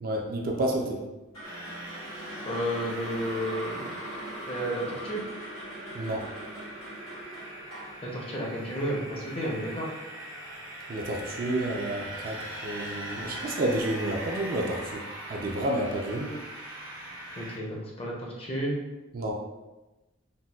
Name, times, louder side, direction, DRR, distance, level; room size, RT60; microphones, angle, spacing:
voice 1, 0.0-1.0 5.9-6.2 10.9-15.0 15.3-16.3 19.1-19.3, right 1 dB, 45° right, 1 dB, 0.3 m, -30 dB
sound 1, 1.3-9.5, right 1 dB, 90° left, 1.4 m, -41 dB
sound 2, 1.4-17.6, right 1 dB, 70° right, 0.9 m, -41 dB
voice 2, 2.5-3.9 4.5-5.2 8.0-9.9 17.4-18.7, equal, 25° left, -2 dB, 0.5 m, -32 dB
3.9 x 2.1 x 2.3 m, 1.1 s
head